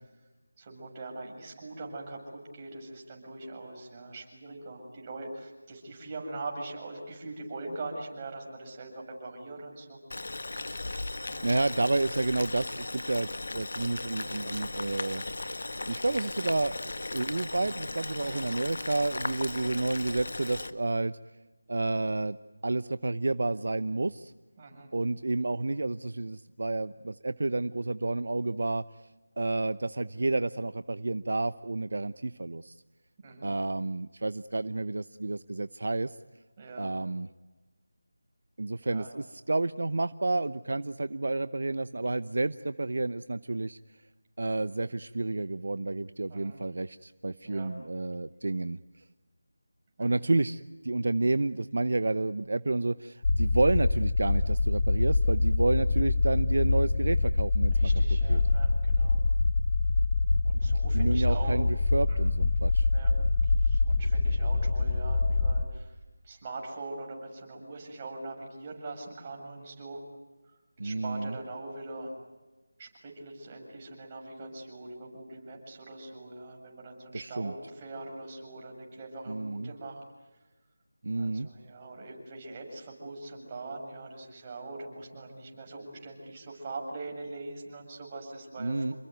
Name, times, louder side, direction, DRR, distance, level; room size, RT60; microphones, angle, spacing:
voice 1, 0.6-10.0 11.3-11.5 18.2-18.4 24.6-24.9 33.2-33.5 36.6-37.0 38.8-39.1 46.3-46.6 47.4-47.8 50.0-50.3 57.7-59.2 60.4-61.6 62.1-62.2 62.9-63.1 63.4-66.0 66.2-70.0 70.4-72.1 72.8-80.0 81.2-89.0, right 2 dB, 20° right, 1 dB, 7.3 m, -42 dB
Boiling, 10.1-20.7, left 2 dB, 60° left, 1.9 m, -37 dB
voice 2, 11.1-13.3 13.5-15.2 15.9-21.2 21.7-22.4 22.6-24.3 24.9-28.8 29.4-32.8 33.4-36.2 36.8-37.3 38.6-43.8 44.4-48.8 50.0-57.8 58.3-58.4 60.9-62.9 70.8-71.3 77.1-77.5 79.3-79.7 81.0-81.5 88.6-88.9, right 2 dB, 60° right, 14 dB, 0.9 m, -30 dB
sound 1, 53.2-65.6, left 3 dB, 45° left, 1.4 m, -25 dB
29.0 x 22.0 x 9.5 m, 1.2 s
figure-of-eight pair, 170°, 0 cm